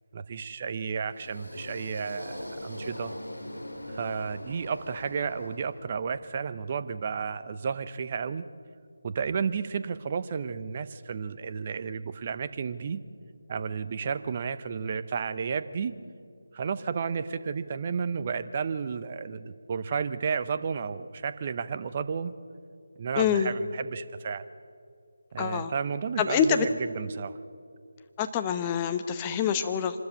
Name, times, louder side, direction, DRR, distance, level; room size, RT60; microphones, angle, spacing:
voice 1, 0.1-3.2 3.9-8.4 9.0-13.0 13.5-15.9 16.5-22.3 23.0-24.4 25.3-26.7 26.9-27.4, right 6 dB, 35° right, 12 dB, 0.8 m, -32 dB
sound 1, 1.0-6.2, left 1 dB, 85° left, 2.9 m, -41 dB
voice 2, 23.2-23.5 25.4-25.7 26.2-26.7 28.2-30.0, left 8 dB, 20° left, 8 dB, 0.9 m, -26 dB
25.5 x 13.0 x 8.4 m, 2.3 s
figure-of-eight pair, 160°, 0 cm